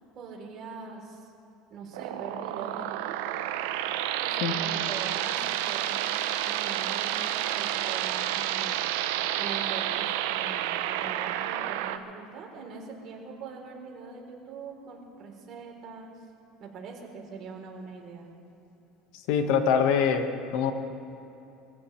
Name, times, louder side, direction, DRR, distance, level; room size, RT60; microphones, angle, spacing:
voice 1, 0.2-1.3 1.7-3.2 3.7-3.8 4.2-6.1 6.5-8.8 9.4-16.2 16.6-18.3, right 5 dB, 45° right, -1 dB, 3.4 m, -42 dB
sound 1, 1.9-12.0, right 12 dB, 85° right, 0.7 m, -30 dB
voice 2, 19.3-20.3 20.5-20.7, left 7 dB, 70° left, 6 dB, 1.5 m, -23 dB
23.5 x 15.5 x 3.3 m, 2.8 s
supercardioid pair, 125°, 0 cm